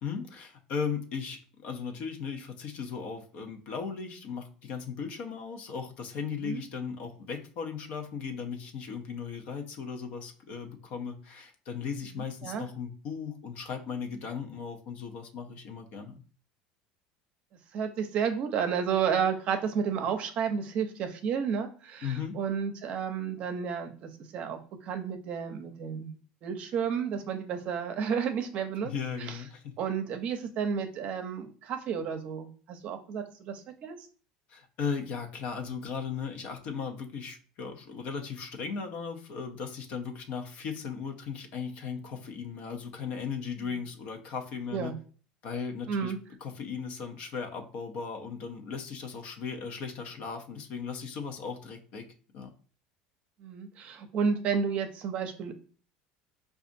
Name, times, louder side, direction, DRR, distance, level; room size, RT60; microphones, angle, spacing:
voice 1, 0.0-16.2 22.0-22.4 28.8-29.8 34.5-44.9 45.4-46.1 46.4-52.1 52.3-52.5, left 6 dB, 60° left, 5 dB, 0.7 m, -37 dB
voice 2, 12.2-12.7 17.7-26.1 26.4-28.9 29.3-29.4 29.8-34.0 43.6-43.8 44.7-45.0 45.9-46.2 53.4-55.5, right 6 dB, 50° right, 7 dB, 0.6 m, -31 dB
4.9 x 2.4 x 2.6 m, 0.40 s
supercardioid pair, 125°, 3 cm